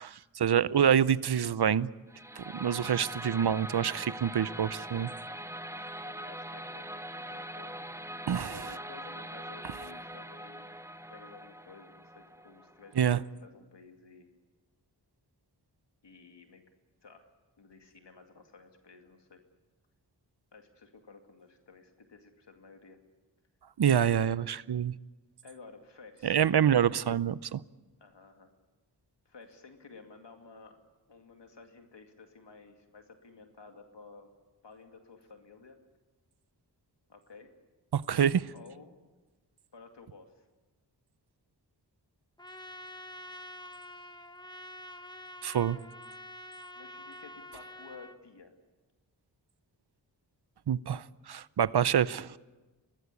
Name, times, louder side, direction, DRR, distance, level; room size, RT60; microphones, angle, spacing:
voice 1, 0.0-1.9 2.4-5.1 8.3-8.5 13.0-13.2 23.8-24.9 26.2-27.6 37.9-38.5 45.4-45.8 50.7-52.4, right 9 dB, 65° right, 0.7 m, -27 dB
sound 1, 2.1-13.1, right 1 dB, 5° right, 0.9 m, -42 dB
voice 2, 6.0-7.9 8.4-10.8 11.1-14.3 16.0-16.6 17.0-17.3 17.6-19.4 20.5-23.0 24.0-24.3 25.4-26.9 28.0-28.5 29.3-30.8 31.1-34.3 34.6-35.8 37.1-37.5 38.5-38.9 39.7-40.5 46.8-48.6, left 4 dB, 75° left, 2.4 m, -53 dB
Trumpet, 42.4-48.2, left 1 dB, 10° left, 1.3 m, -47 dB
23.5 x 19.0 x 8.5 m
wide cardioid pair, 55°, 42 cm